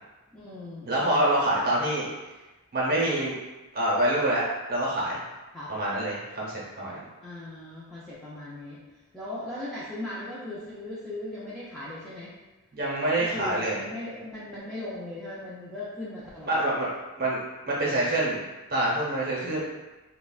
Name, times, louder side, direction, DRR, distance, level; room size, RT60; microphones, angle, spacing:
voice 1, 0.3-1.4 5.5-5.7 7.2-8.8 9.1-12.3 13.2-16.7 17.9-18.1 19.4-19.6, left 1 dB, ahead, -10 dB, 0.4 m, -38 dB
voice 2, 0.9-2.0 2.7-3.3 3.7-4.4 4.7-5.2 5.7-7.0 12.7-13.8 16.5-16.9 17.2-17.4 17.6-18.4 18.7-19.6, right 1 dB, 45° right, -5 dB, 0.8 m, -26 dB
3.4 x 2.1 x 2.3 m, 1.1 s
head